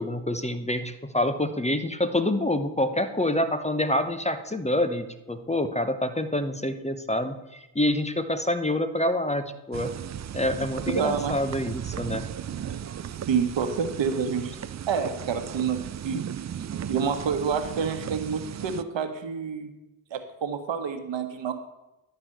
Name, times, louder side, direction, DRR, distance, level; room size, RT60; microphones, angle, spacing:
voice 1, 0.0-9.9 10.3-12.3, left 1 dB, 15° left, 10 dB, 1.0 m, -27 dB
sound 1, 9.7-18.8, right 9 dB, 35° right, 0.5 m, -36 dB
voice 2, 10.9-11.4 12.6-12.8 13.3-14.5 14.9-16.3 16.9-19.7 20.1-21.5, right 6 dB, 65° right, 8 dB, 1.3 m, -28 dB
11.0 x 4.7 x 7.8 m, 0.97 s
supercardioid pair, 45°, 48 cm